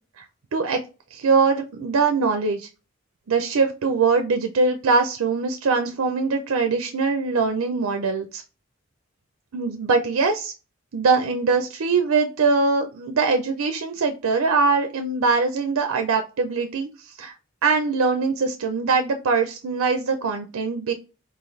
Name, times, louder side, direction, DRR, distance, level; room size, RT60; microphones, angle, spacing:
voice 1, 0.5-0.8 1.1-2.7 3.3-8.4 9.5-10.5 10.9-17.3 17.6-20.9, right 4 dB, 85° right, 5 dB, 0.5 m, -22 dB
3.9 x 2.5 x 3.1 m, 0.30 s
head